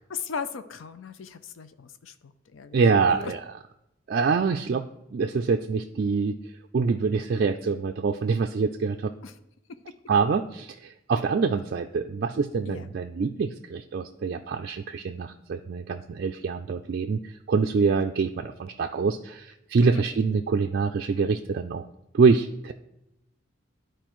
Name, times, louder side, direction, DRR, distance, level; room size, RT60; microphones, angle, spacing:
voice 1, 0.1-3.3 9.2-9.3 12.7-12.9 19.8-20.0, left 6 dB, 90° left, 11 dB, 0.5 m, -37 dB
voice 2, 2.7-3.4 4.1-4.8 5.1-6.4 6.7-9.1 10.1-21.8 22.1-22.7, right 5 dB, 50° right, 4 dB, 0.4 m, -25 dB
12.0 x 4.5 x 3.0 m, 0.85 s
head